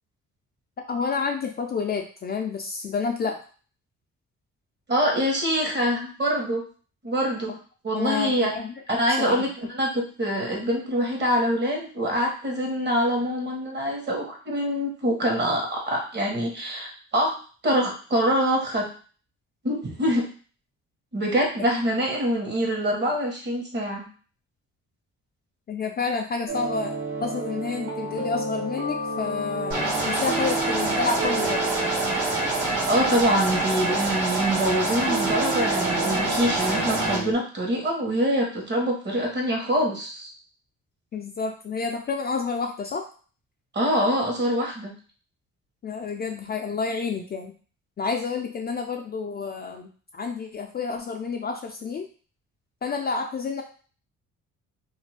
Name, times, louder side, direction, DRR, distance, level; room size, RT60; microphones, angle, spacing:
voice 1, 0.9-3.4 7.5-7.6 7.9-9.5 25.7-31.7 41.1-43.0 45.8-47.5 48.0-52.1 52.8-53.6, left 5 dB, 35° left, 2 dB, 0.4 m, -29 dB
voice 2, 4.9-6.6 7.0-7.5 7.8-8.5 8.9-9.5 9.7-17.3 17.6-18.9 19.6-20.3 21.1-24.1 32.9-40.3 43.7-44.9, equal, 35° right, 0 dB, 1.1 m, -25 dB
sound 1, 26.5-37.3, right 3 dB, 65° right, 1.1 m, -32 dB
sound 2, 29.7-37.2, right 2 dB, 80° right, 1.3 m, -26 dB
2.5 x 2.2 x 3.2 m, 0.40 s
cardioid pair, 90°, 30 cm